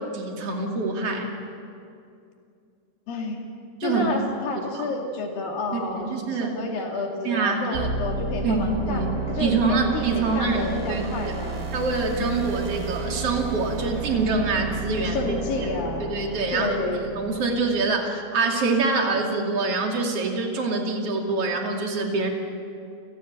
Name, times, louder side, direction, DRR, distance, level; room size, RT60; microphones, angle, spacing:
voice 1, 0.1-1.3 3.8-4.1 4.8-4.9 5.7-6.5 7.2-7.9 8.4-9.1 9.4-11.3 11.7-15.7 16.0-16.7 17.1-22.3, right 3 dB, 40° right, 1 dB, 3.2 m, -25 dB
voice 2, 3.1-3.4 3.8-11.7 12.2-12.7 15.1-16.2 16.5-17.1, left 3 dB, 65° left, 1 dB, 4.1 m, -30 dB
sound 1, 7.7-17.6, right 3 dB, 70° right, 5.5 m, -32 dB
29.5 x 16.0 x 8.9 m, 2.5 s
omnidirectional pair, 4.6 m